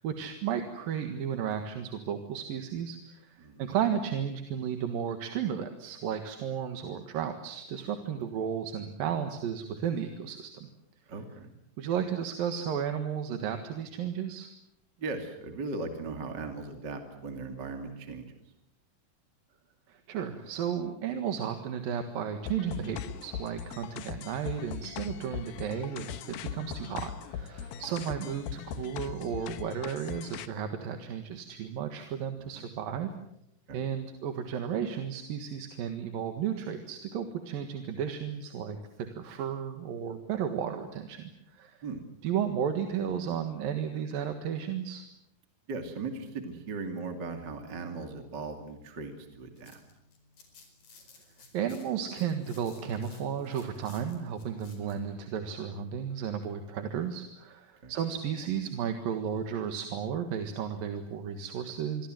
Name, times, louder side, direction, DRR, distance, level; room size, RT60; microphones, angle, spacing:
voice 1, 0.0-10.7 11.8-14.5 19.9-33.1 33.7-38.8 39.1-41.8 42.2-45.0 51.5-62.1, right 8 dB, 80° right, 7 dB, 3.4 m, -33 dB
voice 2, 3.4-3.7 11.1-11.5 15.0-18.3 26.5-26.6 27.8-27.9 32.4-32.7 33.7-33.9 41.8-42.0 45.7-49.8 57.8-57.9, right 3 dB, 30° right, 5 dB, 2.9 m, -38 dB
sound 1, 22.5-30.5, left 9 dB, 90° left, 3.0 m, -40 dB
sound 2, 49.3-55.0, left 4 dB, 65° left, 6.3 m, -57 dB
28.0 x 23.0 x 7.8 m, 0.80 s
omnidirectional pair, 4.1 m